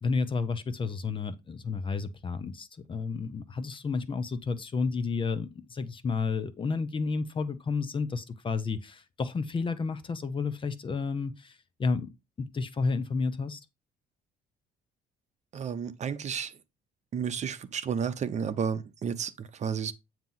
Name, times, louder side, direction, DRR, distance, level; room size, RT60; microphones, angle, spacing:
voice 1, 0.0-12.1 12.4-13.6, left 4 dB, 30° left, 0.8 m, -31 dB
voice 2, 15.5-16.5 17.1-19.9, right 7 dB, 45° right, 0.8 m, -32 dB
8.9 x 3.0 x 5.6 m
cardioid pair, 110°, 17 cm